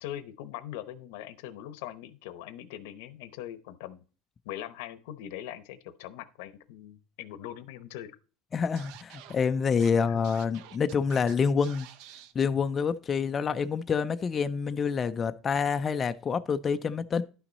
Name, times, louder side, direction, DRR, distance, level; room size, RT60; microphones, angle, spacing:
voice 1, 0.0-4.0 4.4-8.2 10.1-10.2, left 12 dB, 85° left, 0.9 m, -41 dB
voice 2, 8.5-11.9 12.3-17.2, left 6 dB, 20° left, 0.4 m, -27 dB
Scratching (performance technique), 8.8-9.4 9.8-9.9 10.2-11.3 11.6-12.3, right 11 dB, 60° right, 0.7 m, -48 dB
11.0 x 6.0 x 4.0 m
cardioid pair, 165°, 0 cm